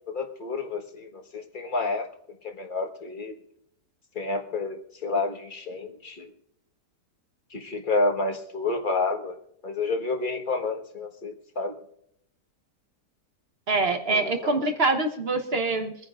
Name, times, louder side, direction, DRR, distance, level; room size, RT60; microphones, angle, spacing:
voice 1, 0.1-2.1 2.6-3.3 4.1-6.3 7.5-9.4 9.6-11.7 14.1-14.7, left 3 dB, 30° left, 3 dB, 1.5 m, -29 dB
voice 2, 13.7-16.1, right 3 dB, 40° right, 5 dB, 1.2 m, -25 dB
23.5 x 9.9 x 2.5 m, 0.72 s
omnidirectional pair, 1.8 m